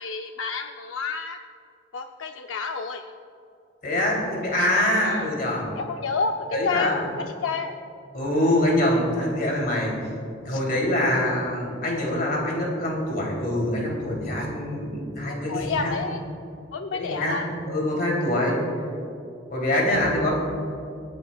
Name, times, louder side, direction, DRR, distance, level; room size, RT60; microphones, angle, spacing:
voice 1, 0.0-1.4 1.9-3.0 5.0-5.3 5.8-7.0 7.4-7.7 10.5-10.6 15.3-16.2 16.7-17.5, left 4 dB, 85° left, 5 dB, 0.6 m, -29 dB
voice 2, 3.8-5.7 6.5-7.0 8.1-9.9 10.4-16.0 16.9-17.4 17.7-18.6 19.5-20.3, left 1 dB, 50° left, -2 dB, 3.1 m, -24 dB
27.0 x 9.5 x 2.4 m, 2.6 s
head